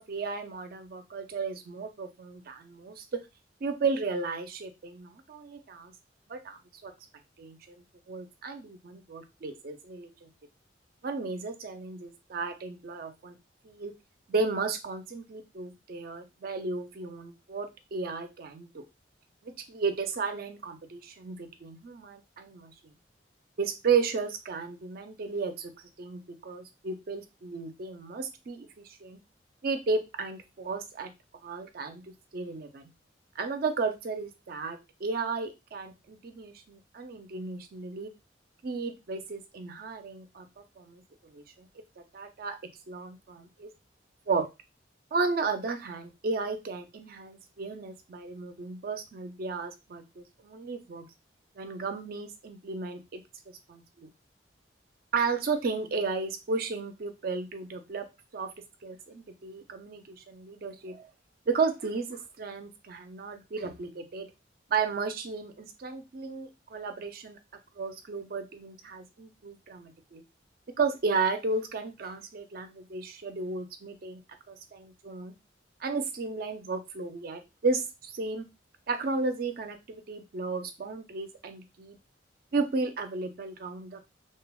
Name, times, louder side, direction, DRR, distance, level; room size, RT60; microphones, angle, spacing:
voice 1, 0.0-3.2 3.6-5.9 6.3-6.9 7.4-10.3 11.0-13.3 13.6-13.9 14.3-18.8 19.4-22.7 23.6-25.7 26.0-29.2 29.6-31.1 31.4-32.9 33.4-38.1 38.6-40.5 40.8-41.7 42.1-42.6 42.9-43.7 44.3-44.5 45.1-51.1 51.6-53.2 53.7-54.1 55.1-58.1 58.3-58.5 58.8-61.1 61.5-64.3 64.7-67.4 67.8-70.2 70.8-74.2 74.5-75.3 75.8-78.4 78.9-82.0 82.5-84.0, right 4 dB, 50° right, 7 dB, 0.4 m, -34 dB
3.2 x 2.0 x 2.2 m, 0.25 s
head